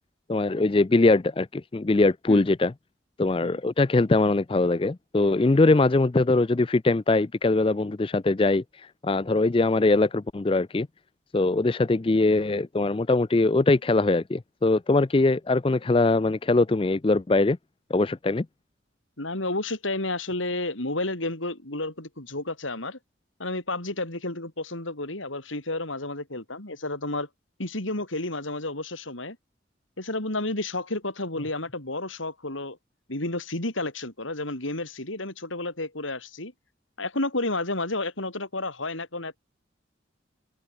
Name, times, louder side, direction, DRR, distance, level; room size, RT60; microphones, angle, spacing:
voice 1, 0.3-2.7 3.2-10.9 11.3-17.6 17.9-18.5, left 2 dB, 25° left, 0.4 m, -22 dB
voice 2, 19.2-23.0 23.4-27.3 27.6-29.4 30.0-32.8 33.1-36.5 37.0-39.4, left 2 dB, 90° left, 5.9 m, -31 dB
open air
head